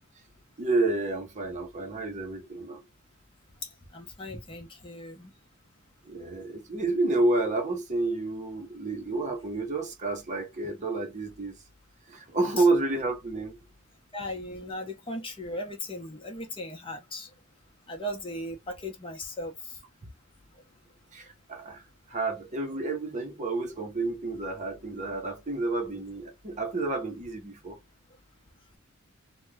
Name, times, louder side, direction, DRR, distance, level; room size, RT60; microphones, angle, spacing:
voice 1, 0.6-2.8 6.1-11.6 12.1-13.6 21.1-27.8, right 2 dB, 35° right, 0.7 m, -30 dB
voice 2, 3.9-5.3 12.6-12.7 14.1-17.3 17.9-19.5, left 1 dB, 25° left, 0.8 m, -37 dB
2.9 x 2.2 x 3.3 m
head